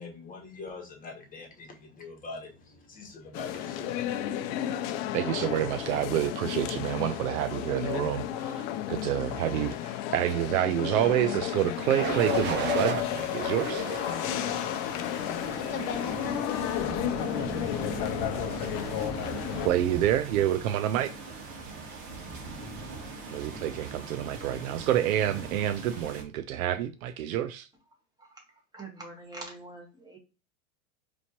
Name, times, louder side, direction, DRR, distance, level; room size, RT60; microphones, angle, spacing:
voice 1, 0.0-4.1, left 3 dB, 20° left, 1.3 m, -43 dB
sound 1, 3.3-19.7, left 12 dB, 45° left, 0.5 m, -32 dB
voice 2, 5.1-13.9 19.6-21.1 23.3-27.7, right 12 dB, 75° right, 0.5 m, -28 dB
sound 2, 11.0-11.4 12.0-13.0 13.6-14.6 15.2-15.6, right 8 dB, 25° right, 0.4 m, -34 dB
sound 3, 11.5-26.2, right 3 dB, 55° right, 1.6 m, -40 dB
voice 3, 28.7-30.2, right 2 dB, 10° right, 1.5 m, -44 dB
4.1 x 3.1 x 2.9 m
hypercardioid pair, 110°, 42 cm